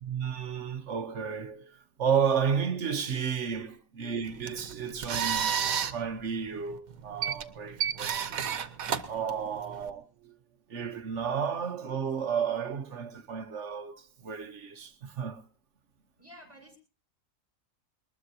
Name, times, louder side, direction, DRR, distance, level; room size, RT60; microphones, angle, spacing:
voice 1, 0.0-8.4 9.1-10.4 10.7-15.4, right 7 dB, 60° right, 1.2 m, -32 dB
sound 1, 4.2-9.9, right 8 dB, 90° right, 1.4 m, -32 dB
voice 2, 16.2-16.8, equal, 25° right, 5.3 m, -52 dB
21.5 x 20.0 x 2.8 m
omnidirectional pair, 1.4 m